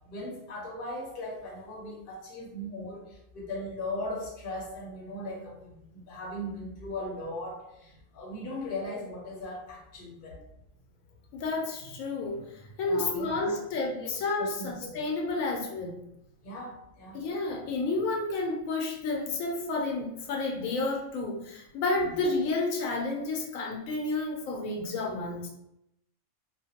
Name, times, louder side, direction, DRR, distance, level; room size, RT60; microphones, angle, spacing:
voice 1, 0.0-3.0 3.3-10.4 12.8-13.6 14.0-14.1 14.4-15.0 16.4-17.2 22.0-22.2, left 1 dB, 50° left, -2 dB, 0.8 m, -38 dB
voice 2, 11.3-12.4 12.8-16.0 17.1-25.5, left 3 dB, 85° left, 0 dB, 1.0 m, -30 dB
2.4 x 2.2 x 2.7 m, 0.82 s
omnidirectional pair, 1.4 m